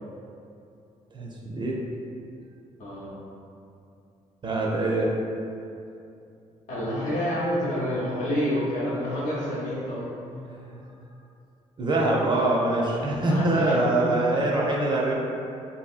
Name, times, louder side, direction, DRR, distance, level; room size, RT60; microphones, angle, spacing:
voice 1, 1.1-1.8 4.4-5.1 10.5-10.8 11.8-15.1, right 2 dB, 35° right, -3 dB, 0.4 m, -24 dB
voice 2, 2.8-3.1 6.7-10.1 13.2-14.2, equal, 75° left, -8 dB, 0.8 m, -28 dB
2.8 x 2.7 x 2.4 m, 2.6 s
cardioid pair, 95°, 14 cm